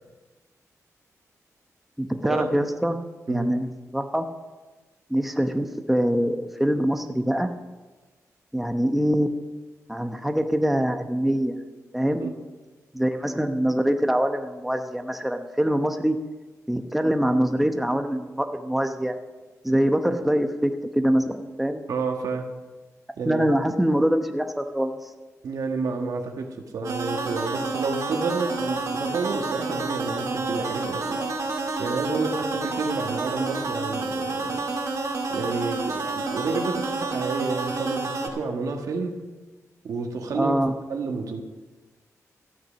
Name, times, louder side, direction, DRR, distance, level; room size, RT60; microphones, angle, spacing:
voice 1, 2.0-3.0 3.3-3.7 3.9-4.3 5.1-7.5 8.5-9.3 9.9-11.6 11.9-12.3 12.9-16.2 16.7-19.1 19.6-21.8 23.3-25.0 40.3-40.7, equal, 5° right, 6 dB, 0.9 m, -24 dB
voice 2, 21.9-22.5 23.2-23.5 25.4-31.2 31.8-34.6 35.3-39.2 39.8-41.4, right 4 dB, 80° right, 3 dB, 1.4 m, -30 dB
sound 1, 26.8-38.3, right 3 dB, 60° right, 2.0 m, -29 dB
13.5 x 8.6 x 6.2 m, 1.3 s
cardioid pair, 95°, 6 cm